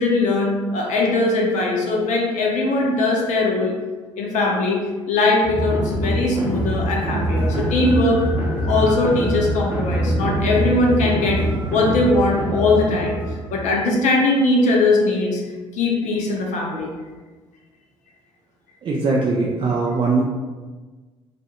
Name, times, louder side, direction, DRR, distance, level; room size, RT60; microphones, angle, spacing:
voice 1, 0.0-3.7 4.2-4.8 5.1-8.2 8.6-11.4 11.7-13.2 13.5-15.4 15.7-16.9, left 2 dB, 55° left, -1 dB, 0.5 m, -20 dB
sound 1, 5.4-13.9, right 1 dB, 10° right, 0.8 m, -24 dB
sound 2, 6.2-13.1, right 1 dB, 85° right, 0.7 m, -35 dB
voice 2, 18.8-20.2, right 3 dB, 35° right, -3 dB, 0.4 m, -20 dB
2.3 x 2.1 x 2.8 m, 1.3 s
hypercardioid pair, 50°, 15 cm